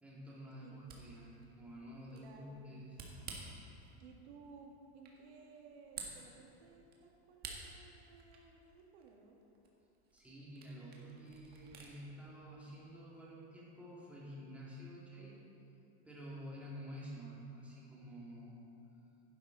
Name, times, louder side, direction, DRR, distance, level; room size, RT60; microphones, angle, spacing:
voice 1, 0.0-3.0 10.1-15.4 16.0-18.7, equal, 5° right, -6 dB, 2.2 m, -50 dB
Camera, 0.6-11.9, right 4 dB, 30° right, 1.5 m, -54 dB
voice 2, 2.1-2.6 4.0-9.4, right 4 dB, 75° right, 1 dB, 1.8 m, -58 dB
11.5 x 10.5 x 3.9 m, 2.8 s
supercardioid pair, 150°, 33 cm